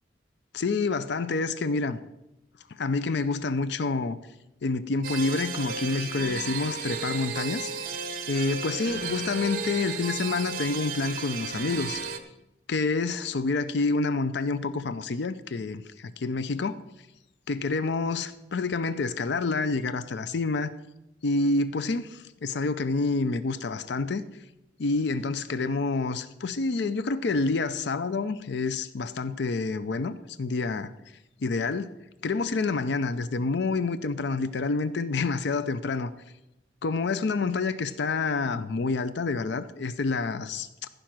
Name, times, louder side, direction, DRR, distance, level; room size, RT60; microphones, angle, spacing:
voice 1, 0.5-2.0 2.7-4.2 4.6-7.7 8.3-12.0 12.7-16.8 17.5-20.7 21.2-24.2 24.8-30.9 31.4-31.9 32.2-36.1 36.8-40.9, left 3 dB, 65° left, 0.5 m, -28 dB
sound 1, 5.0-12.2, right 5 dB, 55° right, 1.0 m, -34 dB
15.0 x 5.2 x 6.0 m
head